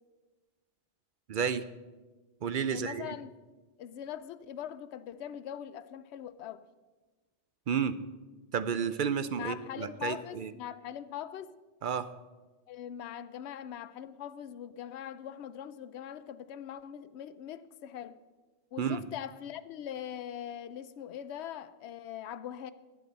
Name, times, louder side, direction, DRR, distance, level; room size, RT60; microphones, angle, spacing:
voice 1, 1.3-1.6 2.4-3.1 7.7-7.9 8.5-10.5 11.8-12.1 18.8-19.0, right 7 dB, 55° right, 0.6 m, -31 dB
voice 2, 2.7-3.4 3.8-6.6 9.4-11.5 12.7-18.2 18.7-22.7, left 10 dB, 70° left, 0.9 m, -42 dB
18.5 x 9.3 x 4.0 m
omnidirectional pair, 1.2 m